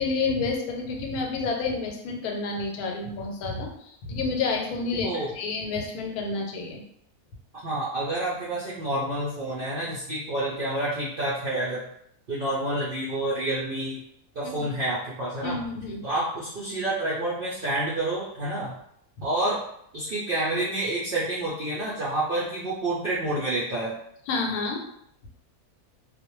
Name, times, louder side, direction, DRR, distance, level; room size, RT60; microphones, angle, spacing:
voice 1, 0.0-6.8 14.4-14.7 15.4-16.0 24.3-24.8, left 4 dB, 80° left, 1 dB, 1.1 m, -29 dB
voice 2, 7.5-11.9 12.3-14.0 14.3-15.6 16.0-18.8 19.2-19.6 19.9-23.9, right 1 dB, 70° right, -7 dB, 0.5 m, -28 dB
2.4 x 2.0 x 3.0 m, 0.73 s
omnidirectional pair, 1.6 m